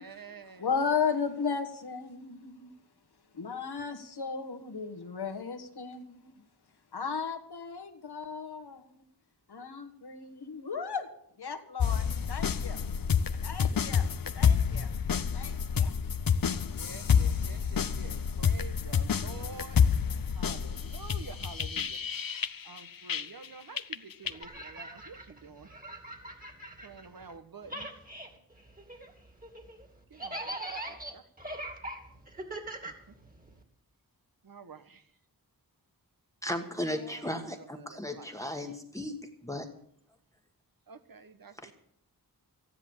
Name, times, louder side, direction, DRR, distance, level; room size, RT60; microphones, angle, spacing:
voice 1, 0.0-0.7 16.7-19.8 20.3-22.0 22.6-25.7 26.8-27.9 30.1-30.6 30.8-31.3 32.7-33.1 34.4-35.1 36.6-38.3 38.6-38.8 40.9-41.6, right 5 dB, 65° right, 10 dB, 1.4 m, -49 dB
voice 2, 0.6-2.7 3.3-6.2 6.9-8.9 9.5-11.1 11.4-12.8 13.4-14.1 14.3-14.9 15.3-15.9, left 5 dB, 85° left, 6 dB, 1.8 m, -35 dB
sound 1, 11.8-23.5 23.8-24.4, left 7 dB, 60° left, 0.8 m, -28 dB
sound 2, 24.2-27.4 27.6-33.6, right 1 dB, 20° right, 2.7 m, -42 dB
voice 3, 36.4-39.2 39.4-39.7 41.6-41.7, left 1 dB, 10° left, 4 dB, 1.5 m, -35 dB
15.0 x 10.5 x 7.2 m, 0.72 s
wide cardioid pair, 90°, 38 cm